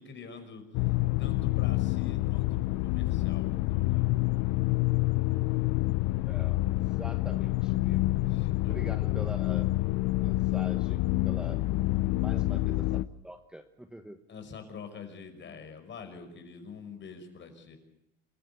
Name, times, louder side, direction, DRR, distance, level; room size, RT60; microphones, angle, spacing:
voice 1, 0.0-4.1 8.3-8.9 12.4-12.6 14.3-17.8, left 5 dB, 35° left, 6 dB, 5.6 m, -46 dB
sound 1, 0.7-13.1, left 18 dB, 65° left, 0.8 m, -27 dB
voice 2, 6.2-8.2 8.7-9.7 10.2-11.6 12.1-14.2, right 1 dB, 5° right, 6 dB, 1.2 m, -45 dB
28.0 x 14.5 x 8.3 m, 0.85 s
supercardioid pair, 100°, 31 cm